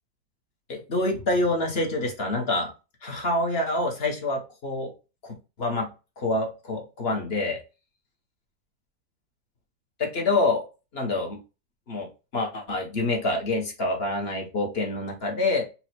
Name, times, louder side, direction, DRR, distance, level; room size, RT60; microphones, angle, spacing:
voice 1, 0.7-2.7 3.0-4.9 5.2-5.9 6.2-7.6 10.0-10.7 10.9-11.4 11.9-15.6, left 2 dB, 45° left, 1 dB, 1.1 m, -27 dB
4.2 x 2.4 x 4.3 m, 0.30 s
omnidirectional pair, 1.8 m